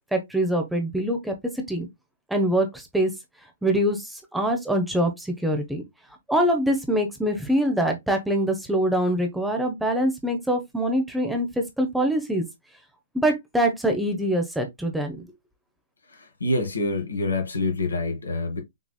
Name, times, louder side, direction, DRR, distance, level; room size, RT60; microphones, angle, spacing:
voice 1, 0.1-1.9 2.3-3.1 3.6-5.8 6.3-12.5 13.1-15.3, right 1 dB, 5° right, 1.1 m, -24 dB
voice 2, 16.1-18.6, left 2 dB, 80° left, 2.0 m, -26 dB
6.1 x 3.9 x 2.2 m
figure-of-eight pair, 120°, 0 cm